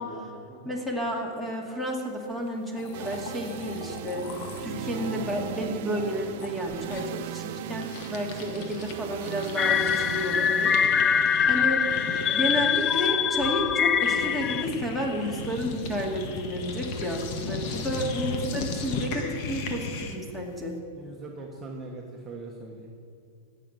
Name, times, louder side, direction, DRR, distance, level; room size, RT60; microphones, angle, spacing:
voice 1, 0.0-0.8 8.6-8.9 17.7-18.1 20.9-22.9, right 2 dB, 20° right, -1 dB, 1.4 m, -42 dB
voice 2, 0.6-10.8 11.1-11.2 11.5-11.8 12.3-20.8, equal, 5° left, 0 dB, 2.2 m, -31 dB
sound 1, 2.5-2.6 2.7-8.9 9.2-20.3, left 3 dB, 50° left, 1.6 m, -37 dB
sound 2, 2.9-16.8, right 13 dB, 60° right, 0.5 m, -40 dB
sound 3, 9.6-14.6, left 8 dB, 25° left, 0.4 m, -24 dB
16.5 x 6.6 x 7.9 m, 2.6 s
supercardioid pair, 140°, 0 cm